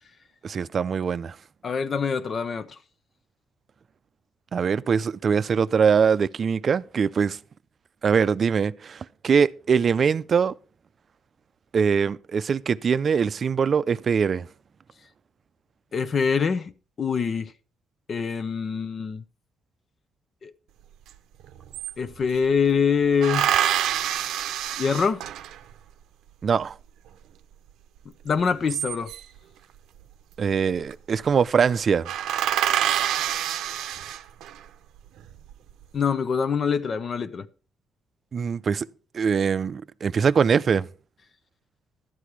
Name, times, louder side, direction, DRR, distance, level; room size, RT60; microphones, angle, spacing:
voice 1, 0.4-1.4 4.5-7.4 8.0-10.5 11.7-14.5 26.4-26.8 30.4-32.1 38.3-38.9 39.1-40.9, right 6 dB, 50° right, 0.5 m, -22 dB
voice 2, 1.6-2.7 15.9-16.7 17.0-17.5 18.1-19.2 20.4-20.5 22.0-23.5 24.8-25.2 28.2-29.1 35.9-37.5, left 6 dB, 50° left, 0.7 m, -24 dB
sound 1, 21.1-21.2 21.4-22.5 23.2-25.7 28.4-29.4 30.5-30.9 31.2-31.4 31.7-31.8 32.0-34.6 35.2-35.8, right 11 dB, 85° right, 0.7 m, -26 dB
12.5 x 8.4 x 4.6 m
cardioid pair, 90°, 0 cm